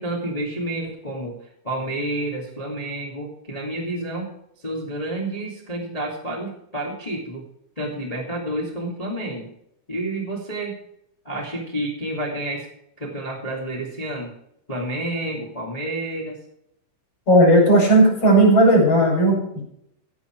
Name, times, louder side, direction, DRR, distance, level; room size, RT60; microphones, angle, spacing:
voice 1, 0.0-7.4 7.7-9.5 9.9-10.8 11.2-12.7 13.0-14.3 14.7-16.4, right 1 dB, 45° left, -2 dB, 0.4 m, -29 dB
voice 2, 17.3-19.6, right 1 dB, 30° left, 0 dB, 6.0 m, -15 dB
16.0 x 8.1 x 4.7 m, 0.75 s
omnidirectional pair, 6.0 m